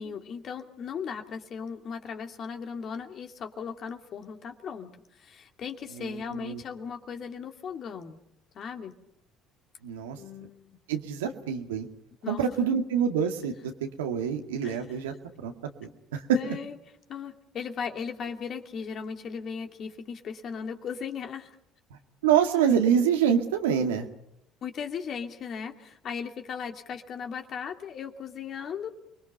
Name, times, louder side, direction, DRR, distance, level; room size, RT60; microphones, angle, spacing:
voice 1, 0.0-8.2 8.5-9.0 10.2-10.8 12.2-12.4 14.6-15.0 16.3-16.8 17.1-21.5 24.6-28.9, left 6 dB, 50° left, 5 dB, 2.6 m, -37 dB
voice 2, 6.0-6.6 9.8-10.2 10.9-11.9 12.3-15.5 15.8-16.6 22.2-24.1, right 8 dB, 85° right, 5 dB, 2.1 m, -26 dB
29.5 x 21.5 x 5.5 m, 0.81 s
hypercardioid pair, 65°, 0 cm